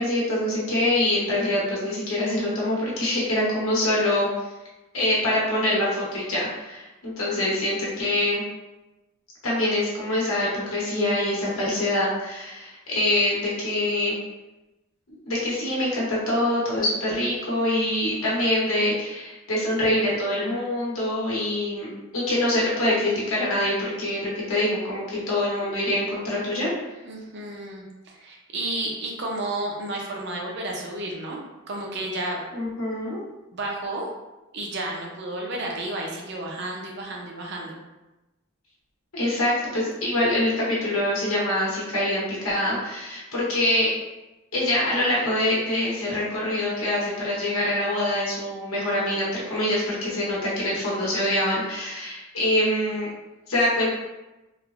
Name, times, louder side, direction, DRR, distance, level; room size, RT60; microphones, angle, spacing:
voice 1, 0.0-4.3 4.9-8.4 9.4-14.2 15.3-26.7 32.5-33.2 39.1-43.9 44.5-53.1 53.5-53.9, left 1 dB, 85° left, -7 dB, 1.0 m, -25 dB
voice 2, 27.0-31.4 31.7-32.4 33.5-34.1 34.5-37.8, right 2 dB, 55° right, -1 dB, 0.5 m, -32 dB
3.1 x 2.1 x 2.4 m, 1.0 s
head